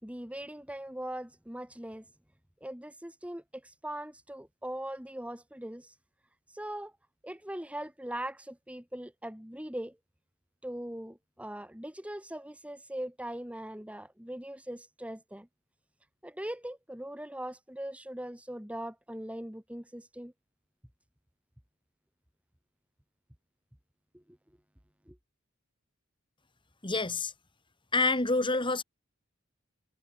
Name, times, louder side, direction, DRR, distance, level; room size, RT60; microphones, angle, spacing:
voice 1, 0.0-2.1 2.6-5.9 6.5-6.9 7.2-10.0 10.6-15.5 16.2-20.3 24.1-24.2 25.1-25.2, right 1 dB, 5° right, 2.2 m, -40 dB
voice 2, 26.8-27.3 27.9-28.8, left 3 dB, 25° left, 3.2 m, -27 dB
head